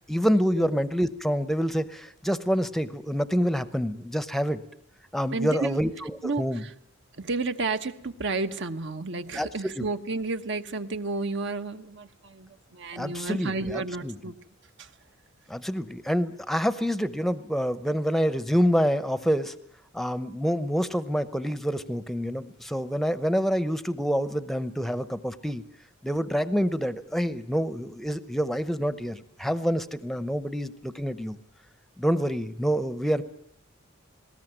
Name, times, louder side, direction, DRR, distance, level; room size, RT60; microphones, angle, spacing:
voice 1, 0.1-4.6 5.1-6.6 9.3-9.5 9.8-9.9 13.0-14.1 15.5-19.5 19.9-25.6 26.0-31.4 32.0-33.2, equal, ahead, 14 dB, 0.8 m, -27 dB
voice 2, 5.3-5.8 6.2-6.7 7.1-14.3 14.8-14.9, right 3 dB, 60° right, 9 dB, 1.2 m, -31 dB
20.0 x 18.0 x 9.0 m, 0.72 s
head